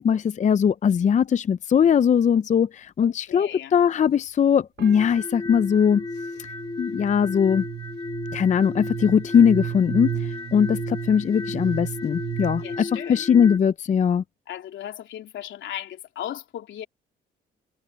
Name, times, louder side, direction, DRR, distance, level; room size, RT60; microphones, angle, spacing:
voice 1, 0.0-6.0 6.8-7.6 8.3-14.2, left 7 dB, 40° left, 0.5 m, -20 dB
voice 2, 3.0-3.7 12.6-13.3 14.5-16.9, left 11 dB, 75° left, 3.3 m, -36 dB
sound 1, 4.8-12.8, right 12 dB, 55° right, 1.2 m, -35 dB
sound 2, 5.0-13.6, left 3 dB, 20° left, 1.5 m, -35 dB
cardioid pair, 90°, 20 cm